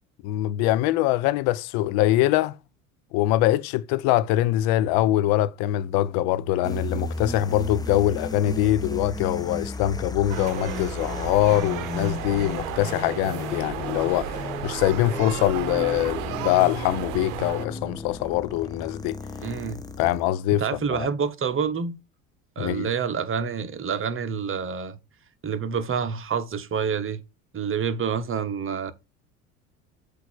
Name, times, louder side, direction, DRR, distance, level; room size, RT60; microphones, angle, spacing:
voice 1, 0.2-2.6 3.1-19.2 20.0-20.6 20.9-21.1 22.6-22.9, left 14 dB, 55° left, 0.7 m, -23 dB
sound 1, 6.6-20.3, left 3 dB, 10° left, 0.8 m, -35 dB
sound 2, 10.3-17.7, right 13 dB, 65° right, 0.8 m, -34 dB
voice 2, 19.4-20.1 20.6-22.0 22.6-25.0 25.4-27.2 27.5-28.9, right 6 dB, 30° right, 1.1 m, -28 dB
8.0 x 2.8 x 6.1 m
hypercardioid pair, 75°, 44 cm